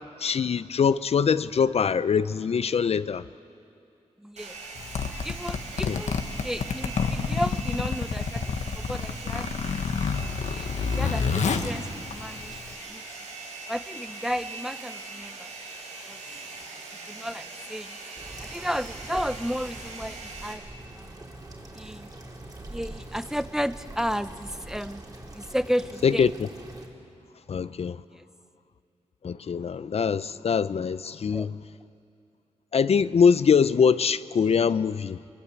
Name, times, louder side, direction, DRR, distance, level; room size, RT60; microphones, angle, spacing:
voice 1, 0.0-3.2 5.9-6.0 26.0-26.3 27.5-28.0 29.2-31.6 32.7-35.2, left 6 dB, 60° left, 0.6 m, -23 dB
voice 2, 4.2-4.6 5.2-9.5 10.2-12.6 12.9-13.0 13.7-15.5 16.1-16.2 17.1-18.0 18.4-20.6 21.0-21.1 21.7-22.1 22.7-25.0 25.3-26.3 28.1-28.2 31.3-31.5, equal, 5° right, 0.8 m, -33 dB
Domestic sounds home sounds, 4.4-20.5, right 3 dB, 90° right, 4.2 m, -41 dB
Zipper (clothing), 4.8-12.7, left 5 dB, 80° left, 1.4 m, -29 dB
sound 1, 18.2-26.9, right 1 dB, 30° right, 4.5 m, -43 dB
23.0 x 22.0 x 8.5 m
cardioid pair, 55°, 12 cm